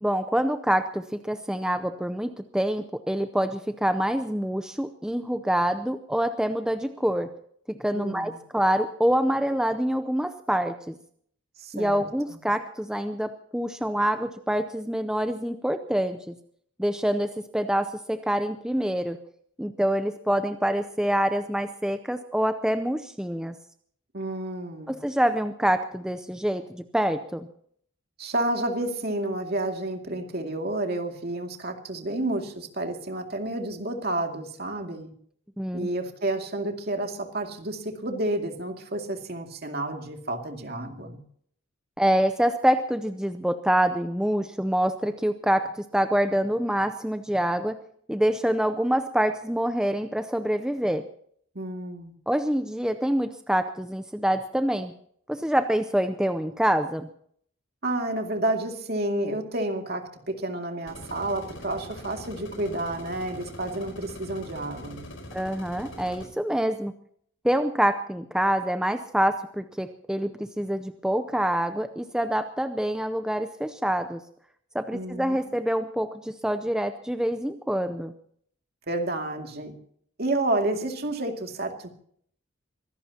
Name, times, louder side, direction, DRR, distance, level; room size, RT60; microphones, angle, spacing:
voice 1, 0.0-7.3 7.7-10.9 11.7-16.3 16.8-19.2 19.6-23.6 24.9-27.5 35.6-35.9 42.0-47.8 48.1-51.0 52.3-54.9 55.3-57.1 65.3-66.9 67.4-74.2 74.7-78.1, equal, 5° right, 9 dB, 0.6 m, -26 dB
voice 2, 7.9-8.4 11.6-12.4 24.1-25.0 28.2-35.1 35.7-41.2 51.5-52.1 57.8-65.1 74.9-75.4 78.9-79.7 80.2-81.9, right 1 dB, 50° right, 3 dB, 2.4 m, -30 dB
sound 1, 60.9-66.3, left 1 dB, 80° left, 4.7 m, -42 dB
24.5 x 17.0 x 2.9 m, 0.62 s
head